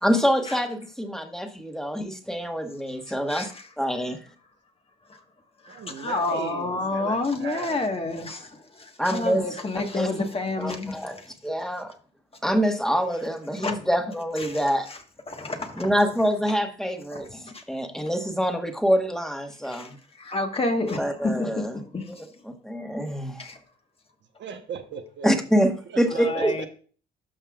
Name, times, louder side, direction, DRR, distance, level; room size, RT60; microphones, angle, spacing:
voice 1, 0.0-3.5 3.8-4.2 9.0-9.6 9.9-10.1 10.6-11.2 11.4-11.9 12.4-14.9 15.8-19.9 21.0-21.8 22.6-23.4 25.2-25.7 26.0-26.5, equal, ahead, 1.5 m, -25 dB
voice 2, 3.3-3.6 5.6-11.3 13.6-13.8 14.4-14.6 14.9-15.0 15.3-15.9 17.1-17.2 17.5-17.6 19.7-19.9 20.2-22.3 23.4-23.6 26.1-26.7, left 2 dB, 30° left, 1.4 m, -29 dB
voice 3, 5.7-8.0 24.4-25.3 25.9-26.7, right 7 dB, 65° right, 1.1 m, -37 dB
12.5 x 5.4 x 2.4 m
cardioid pair, 90°, 20 cm